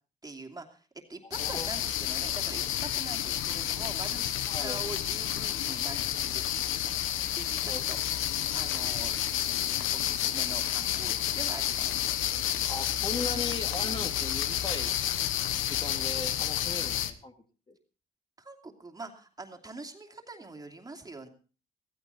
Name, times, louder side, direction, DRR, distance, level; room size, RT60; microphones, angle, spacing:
voice 1, 0.2-6.5 6.9-7.0 7.3-9.2 9.9-12.1 16.8-17.0 18.4-21.3, right 3 dB, 20° right, 3 dB, 2.7 m, -44 dB
sound 1, 1.3-17.1, left 11 dB, 85° left, 1.1 m, -30 dB
voice 2, 1.3-1.7 4.5-4.8 7.7-7.8 12.6-14.9 15.7-17.3 17.7-17.8, left 2 dB, 25° left, 5 dB, 2.1 m, -38 dB
15.5 x 15.5 x 4.1 m, 0.37 s
cardioid pair, 90°, 20 cm